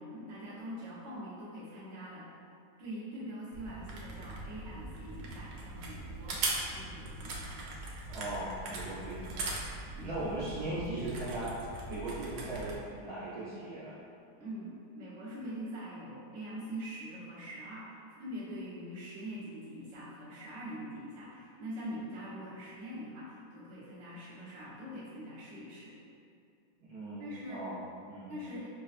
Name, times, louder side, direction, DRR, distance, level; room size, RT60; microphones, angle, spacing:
voice 1, 0.0-2.3 2.8-6.4 6.7-7.5 9.9-10.2 14.4-25.9 27.2-27.7 28.3-28.7, equal, 45° right, -11 dB, 1.2 m, -43 dB
sound 1, 3.5-12.8, right 2 dB, 90° right, 1.3 m, -40 dB
voice 2, 8.1-9.5 10.0-11.6 11.9-14.0 26.8-28.3, right 1 dB, 65° right, -11 dB, 1.3 m, -38 dB
4.9 x 2.3 x 2.4 m, 2.5 s
omnidirectional pair, 1.9 m